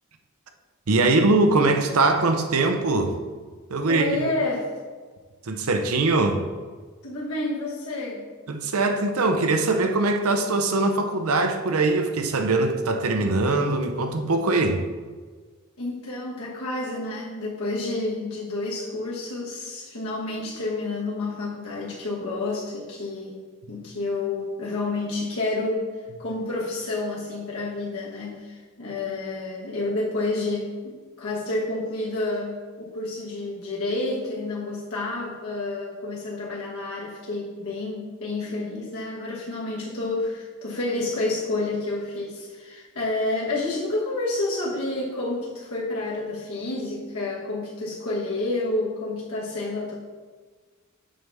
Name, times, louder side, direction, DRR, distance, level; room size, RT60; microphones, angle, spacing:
voice 1, 0.9-3.2 3.7-4.1 5.4-6.5 8.5-14.9 23.7-23.8, right 3 dB, 90° right, 0.7 m, -22 dB
voice 2, 3.8-4.7 7.0-8.3 15.8-49.9, left 2 dB, 80° left, 1.3 m, -29 dB
7.5 x 5.3 x 3.5 m
head